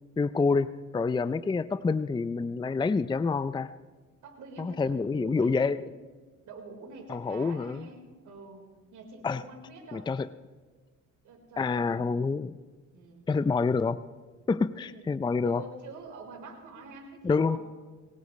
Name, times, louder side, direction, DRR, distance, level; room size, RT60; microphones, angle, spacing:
voice 1, 0.2-3.7 4.6-5.8 7.1-7.9 9.2-9.4 9.9-10.3 11.6-12.5 13.3-14.0 14.5-15.6 17.2-17.6, left 4 dB, 15° left, 14 dB, 0.4 m, -27 dB
voice 2, 4.2-5.8 6.4-8.6 8.9-10.1 11.2-11.9 12.9-13.2 14.9-15.1 15.4-17.6, right 3 dB, 80° right, 2 dB, 4.3 m, -46 dB
22.5 x 19.0 x 3.2 m, 1.4 s
cardioid pair, 90°, 30 cm